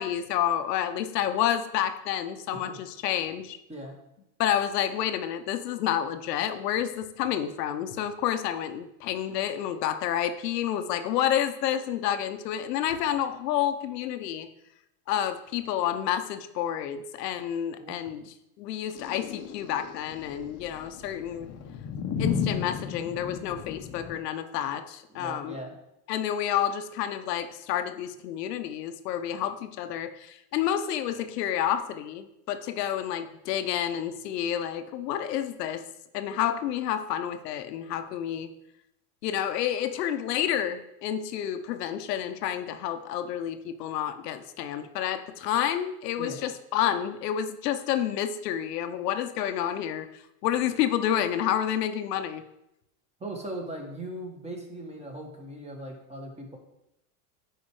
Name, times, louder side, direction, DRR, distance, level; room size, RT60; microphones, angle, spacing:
voice 1, 0.0-3.6 4.4-14.5 15.1-21.5 22.2-25.6 26.1-35.8 36.1-38.5 39.2-50.1 50.4-52.4, left 10 dB, 85° left, 9 dB, 0.9 m, -29 dB
voice 2, 17.8-18.1 25.1-25.8 46.2-46.4 53.2-56.6, right 1 dB, 15° right, 1 dB, 1.7 m, -39 dB
sound 1, 19.0-24.2, left 6 dB, 35° left, 0.9 m, -34 dB
9.1 x 5.0 x 4.8 m, 0.83 s
supercardioid pair, 125°, 47 cm